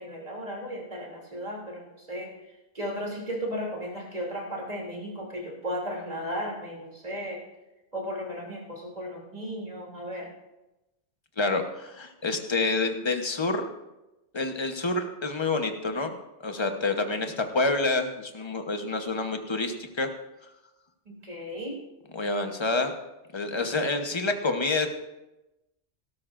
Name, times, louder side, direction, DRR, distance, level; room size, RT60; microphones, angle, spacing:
voice 1, 0.0-2.3 2.7-7.4 7.9-10.3 21.0-21.8, equal, 35° right, -2 dB, 3.0 m, -35 dB
voice 2, 11.4-13.7 14.3-16.1 16.4-20.1 22.1-22.9 23.3-24.9, left 3 dB, 25° left, 5 dB, 1.0 m, -28 dB
17.5 x 12.5 x 2.5 m, 0.99 s
omnidirectional pair, 1.3 m